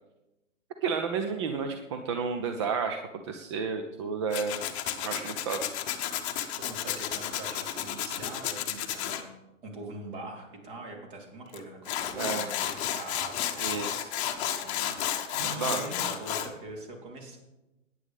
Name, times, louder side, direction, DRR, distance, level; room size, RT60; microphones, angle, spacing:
voice 1, 0.8-3.0 3.3-4.6 5.0-5.8 12.1-12.5 13.6-14.1 15.4-15.9, right 5 dB, 25° right, 6 dB, 0.6 m, -31 dB
Tools, 4.3-9.2 11.5-11.6 11.8-16.5, left 11 dB, 25° left, 1.0 m, -32 dB
voice 2, 6.6-9.3 9.6-13.6 14.6-15.0 15.3-17.4, right 2 dB, 40° right, 0 dB, 3.8 m, -43 dB
20.5 x 9.9 x 3.6 m, 1.0 s
figure-of-eight pair, 125°, 39 cm